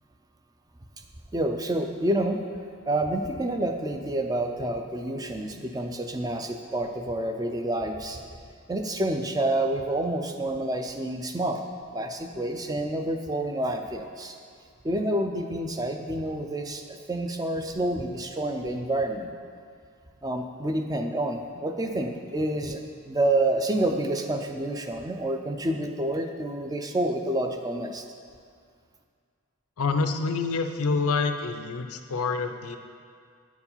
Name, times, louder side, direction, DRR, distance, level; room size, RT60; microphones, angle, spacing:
voice 1, 1.3-2.4 2.9-8.2 8.7-11.6 11.9-14.4 14.8-16.8 17.1-19.3 20.2-28.0, right 1 dB, 15° right, 5 dB, 0.4 m, -28 dB
voice 2, 29.8-32.8, left 4 dB, 90° left, 7 dB, 0.5 m, -27 dB
8.6 x 4.7 x 5.6 m, 2.1 s
head